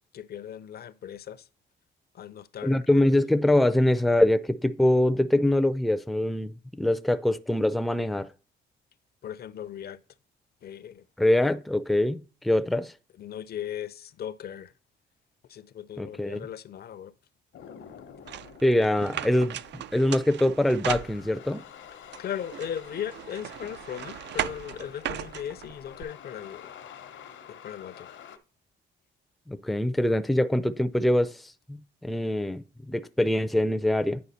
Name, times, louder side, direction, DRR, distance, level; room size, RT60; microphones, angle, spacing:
voice 1, 0.1-1.5 2.1-3.0 9.2-10.0 10.6-11.0 13.2-14.7 15.5-17.1 22.2-26.7 27.5-28.1, left 9 dB, 55° left, 0.6 m, -38 dB
voice 2, 2.6-8.3 11.2-12.9 16.0-16.4 18.6-19.6 19.9-21.6 29.5-31.4 31.7-34.2, left 1 dB, ahead, 0.5 m, -24 dB
sound 1, 17.5-28.4, left 8 dB, 70° left, 1.0 m, -48 dB
sound 2, 18.3-21.6 22.1-26.0, right 11 dB, 65° right, 0.5 m, -37 dB
9.4 x 4.8 x 4.2 m
cardioid pair, 90°, 20 cm